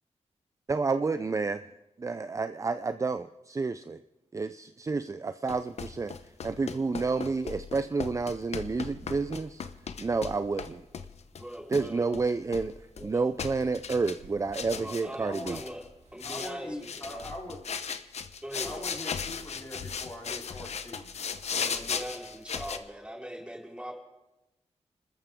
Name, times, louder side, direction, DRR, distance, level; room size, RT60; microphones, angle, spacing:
voice 1, 0.7-1.7 2.0-4.0 4.3-9.6 10.0-10.9 11.7-15.6, right 4 dB, 25° right, 11 dB, 0.4 m, -30 dB
sound 1, 5.5-10.7 10.9-11.9 12.1-13.1 13.4-14.2 14.5-15.1 15.3-15.8 16.2-16.5 16.8-22.8, left 6 dB, 70° left, 0.9 m, -37 dB
Walk footsteps, 8.0-17.6, right 3 dB, 90° right, 2.4 m, -60 dB
voice 2, 11.3-12.0 13.0-13.1 14.7-15.8 16.1-17.3 18.4-18.8 21.6-23.9, equal, 10° right, -1 dB, 4.3 m, -41 dB
voice 3, 15.2-15.6 16.2-17.7 18.6-21.1 21.5-22.0, left 1 dB, 25° left, -2 dB, 3.7 m, -42 dB
27.5 x 13.5 x 3.7 m, 0.98 s
wide cardioid pair, 95°, 11 cm